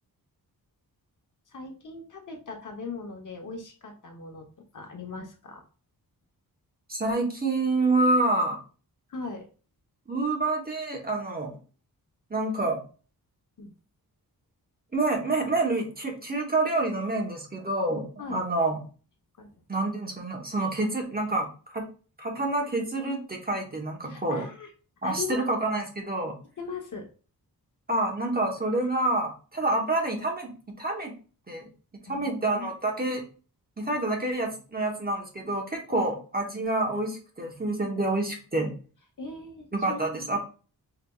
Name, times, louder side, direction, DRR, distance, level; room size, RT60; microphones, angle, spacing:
voice 1, 1.5-4.5 4.7-5.6 9.1-9.5 13.6-13.7 18.2-18.4 19.4-19.5 24.0-24.7 25.0-25.4 26.6-27.1 32.1-32.7 35.9-36.1 39.2-40.4, left 4 dB, 55° left, 2 dB, 1.0 m, -39 dB
voice 2, 6.9-8.6 10.1-11.6 12.3-12.8 14.9-18.8 19.7-21.8 22.2-24.4 25.0-26.3 27.9-31.1 31.5-31.7 32.1-33.2 33.8-38.7 39.7-40.4, right 2 dB, 25° right, 1 dB, 1.0 m, -27 dB
4.9 x 3.3 x 2.3 m, 0.37 s
wide cardioid pair, 135°, 37 cm